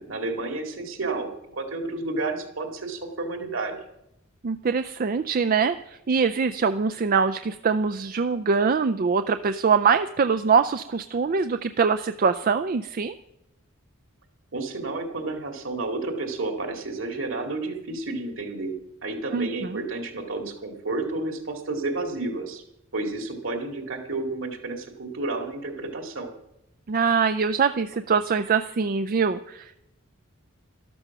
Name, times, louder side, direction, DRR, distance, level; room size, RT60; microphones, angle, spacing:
voice 1, 0.0-3.8 14.5-18.7 19.0-22.6 22.9-26.3, right 2 dB, 65° right, 4 dB, 2.4 m, -31 dB
voice 2, 4.4-13.1 19.3-19.8 26.9-29.7, right 5 dB, 45° right, 11 dB, 0.4 m, -23 dB
13.0 x 12.5 x 6.0 m, 0.86 s
head